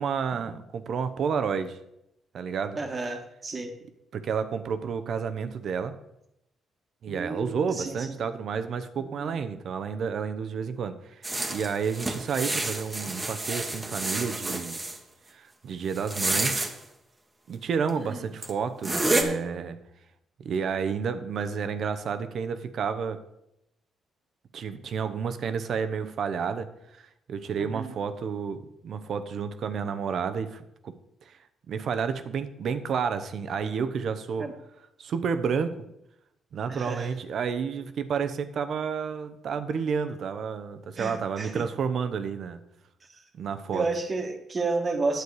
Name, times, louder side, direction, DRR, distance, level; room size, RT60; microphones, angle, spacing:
voice 1, 0.0-1.8 2.3-2.8 4.1-5.9 7.0-14.8 15.3-16.7 17.5-19.8 20.4-23.2 24.5-26.7 27.0-30.9 31.3-31.4 31.7-34.5 35.0-35.8 36.5-42.6 43.3-43.8, right 6 dB, 60° right, 10 dB, 0.9 m, -30 dB
voice 2, 2.7-3.7 7.1-8.2 9.0-9.3 18.1-18.2 27.6-27.9 34.4-34.5 36.7-37.1 41.0-41.6 43.7-45.2, right 3 dB, 35° right, 4 dB, 1.5 m, -31 dB
sound 1, 11.2-15.0 16.0-16.7 17.9-18.0 18.4-18.5 18.8-19.2, right 2 dB, 20° right, 1.4 m, -29 dB
9.7 x 7.8 x 4.8 m, 0.83 s
cardioid pair, 90°, 0 cm